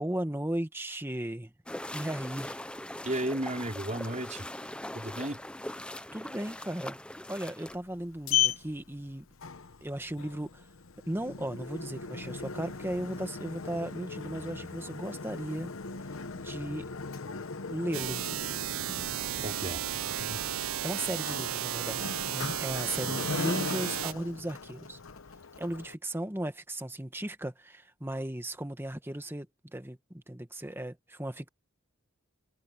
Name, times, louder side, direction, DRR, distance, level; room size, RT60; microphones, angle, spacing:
voice 1, 0.0-1.5 1.9-2.6 6.1-7.0 7.3-9.2 9.8-10.7 11.0-15.7 16.3-16.9 17.7-18.2 20.3-25.0 25.6-29.5 29.7-31.5, right 1 dB, 10° right, 1.4 m, -36 dB
sound 1, 1.7-7.8, left 1 dB, 5° left, 0.7 m, -41 dB
voice 2, 3.0-4.5 4.9-5.4 19.4-19.8, right 1 dB, 35° right, 5.3 m, -33 dB
Sliding door, 7.7-26.0, left 7 dB, 70° left, 1.0 m, -38 dB
sound 2, 17.9-24.1, right 10 dB, 70° right, 0.6 m, -34 dB
head